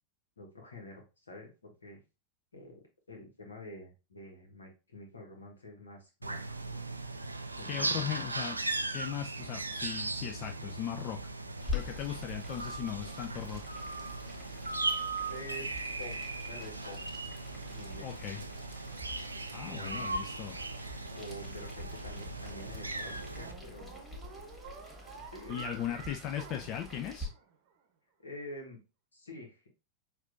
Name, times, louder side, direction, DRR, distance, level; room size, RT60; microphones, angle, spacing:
voice 1, 0.4-2.0 2.5-6.8 7.5-8.3 15.3-15.7 16.0-17.0 17.7-18.2 19.6-20.2 21.1-24.0 25.0-26.1 28.2-28.8 29.1-29.8, left 1 dB, 75° left, 1 dB, 1.4 m, -48 dB
sound 1, 6.2-23.5, right 2 dB, 80° right, 0.4 m, -38 dB
voice 2, 7.7-8.6 8.9-11.2 11.7-13.6 18.0-18.4 19.5-20.6 25.5-27.3, left 10 dB, 40° left, 5 dB, 0.4 m, -38 dB
Boiling, 11.6-27.2, left 3 dB, 10° left, 1.7 m, -46 dB
sound 2, 22.2-27.7, right 6 dB, 45° right, 0.9 m, -49 dB
6.0 x 2.6 x 2.6 m, 0.29 s
figure-of-eight pair, 90°, 0 cm